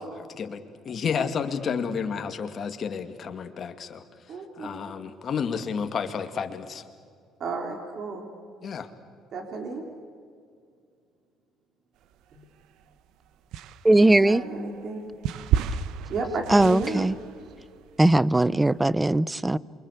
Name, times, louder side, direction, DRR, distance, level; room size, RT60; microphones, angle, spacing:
voice 1, 0.3-6.8 8.6-8.9, left 6 dB, 40° left, 7 dB, 2.3 m, -31 dB
voice 2, 4.3-4.7 7.4-8.3 9.3-9.8 12.3-12.4 14.1-15.0 16.1-17.1, right 3 dB, 50° right, 3 dB, 3.7 m, -33 dB
sound 1, 12.1-13.0 13.5-18.8, right 9 dB, 70° right, 0.9 m, -32 dB
voice 3, 13.8-14.4 16.5-17.1 18.0-19.6, right 1 dB, 10° right, 20 dB, 0.6 m, -19 dB
28.5 x 24.5 x 8.2 m, 2.3 s
cardioid pair, 110°, 0 cm